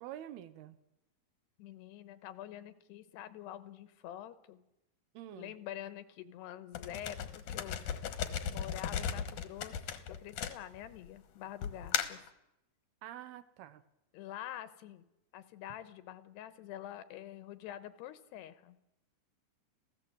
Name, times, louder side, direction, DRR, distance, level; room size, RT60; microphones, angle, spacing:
voice 1, 0.0-0.8 5.1-5.6 13.0-13.8, right 12 dB, 75° right, 13 dB, 2.7 m, -47 dB
voice 2, 1.6-4.6 5.3-7.9 8.5-12.2 14.1-15.0 15.3-18.8, left 12 dB, 80° left, 12 dB, 3.1 m, -46 dB
sound 1, 6.7-11.1 11.6-12.3, left 8 dB, 60° left, 2.3 m, -36 dB
27.5 x 16.0 x 7.9 m, 0.92 s
omnidirectional pair, 4.9 m